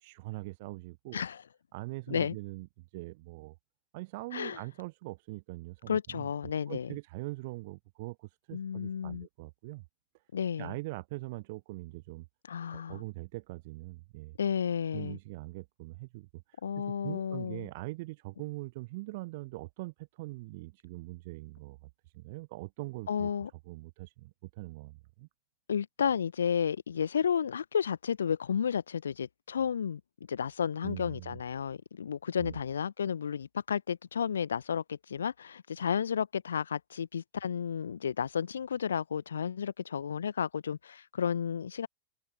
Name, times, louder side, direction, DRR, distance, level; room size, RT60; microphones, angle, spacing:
voice 1, 0.0-1.2 1.7-3.6 3.9-6.3 6.7-9.8 10.6-12.3 12.7-14.4 14.9-16.6 17.0-23.3 23.7-25.3 30.8-31.4 32.4-32.6, right 22 dB, 50° right, 0.5 m, -42 dB
voice 2, 5.9-6.9 8.5-9.3 10.3-10.7 12.5-13.0 14.4-15.2 16.6-17.7 23.1-23.5 25.7-30.0 30.3-41.9, left 7 dB, 70° left, 0.9 m, -32 dB
figure-of-eight pair, 90°, 0 cm